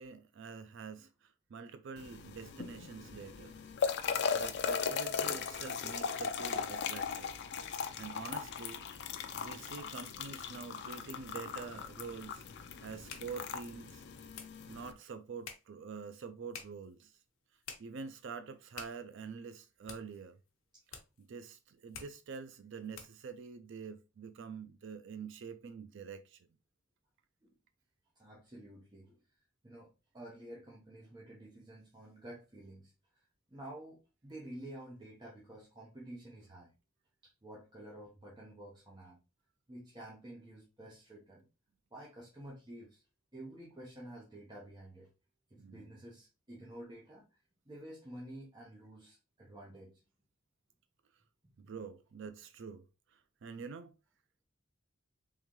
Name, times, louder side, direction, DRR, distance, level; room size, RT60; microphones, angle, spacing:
voice 1, 0.0-3.6 4.3-7.3 7.8-8.9 9.3-12.4 12.8-14.0 14.7-17.2 17.8-20.4 20.9-26.5 45.6-46.0 51.6-54.0, right 5 dB, 60° right, 0.4 m, -46 dB
sound 1, 2.0-14.9, left 6 dB, 50° left, 0.4 m, -38 dB
sound 2, 15.0-23.3, left 6 dB, 70° left, 0.8 m, -54 dB
voice 2, 28.2-29.2 29.6-33.2 33.5-36.7 37.2-39.2 39.7-41.5 41.9-43.0 43.3-45.1 45.5-47.4 47.7-50.0, right 1 dB, 20° right, 0.8 m, -50 dB
3.7 x 3.1 x 3.1 m
head